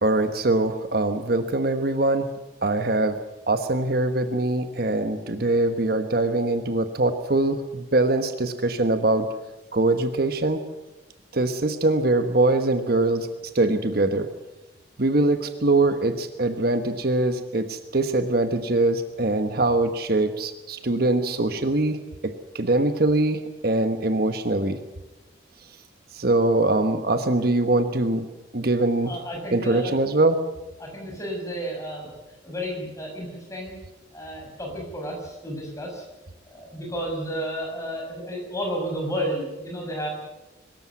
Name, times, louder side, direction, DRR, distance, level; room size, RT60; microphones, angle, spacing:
voice 1, 0.0-2.3 2.6-3.2 3.5-9.3 9.7-10.6 11.3-13.3 13.5-14.3 15.0-22.0 22.2-24.8 26.1-28.3 28.5-29.2 29.5-30.4, right 2 dB, 50° right, 8 dB, 1.2 m, -23 dB
voice 2, 29.0-29.9 30.8-32.1 32.4-33.7 34.1-36.0 36.5-40.1, equal, 15° left, 0 dB, 6.5 m, -32 dB
23.5 x 13.5 x 9.4 m, 1.0 s
head